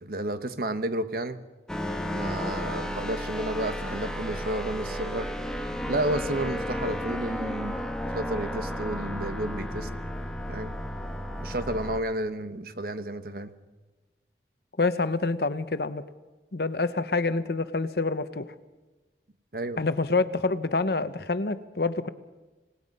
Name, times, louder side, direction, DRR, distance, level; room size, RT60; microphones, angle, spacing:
voice 1, 0.0-1.4 2.1-5.3 5.9-7.9 8.1-9.9 10.5-10.7 11.4-13.5 19.5-19.8, right 1 dB, 55° right, 10 dB, 1.3 m, -31 dB
sound 1, 1.7-12.0, equal, 5° left, 1.5 m, -33 dB
voice 2, 14.8-16.0 16.5-18.5 19.8-22.1, left 3 dB, 60° left, 13 dB, 0.9 m, -27 dB
27.0 x 18.5 x 5.5 m, 1.2 s
head